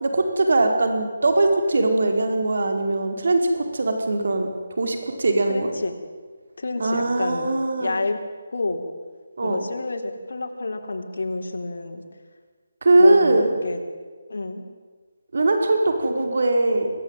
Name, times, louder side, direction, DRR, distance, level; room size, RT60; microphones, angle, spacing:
voice 1, 0.0-4.5 4.8-5.7 6.8-8.0 9.4-9.6 12.8-13.6 15.3-16.9, right 2 dB, 65° right, 4 dB, 5.0 m, -20 dB
voice 2, 5.5-5.9 6.6-7.5 7.7-8.2 8.5-8.8 9.4-12.0 13.0-13.8 14.3-14.7, left 3 dB, 70° left, 2 dB, 4.0 m, -29 dB
25.5 x 16.0 x 9.3 m, 1.5 s
hypercardioid pair, 170°, 0 cm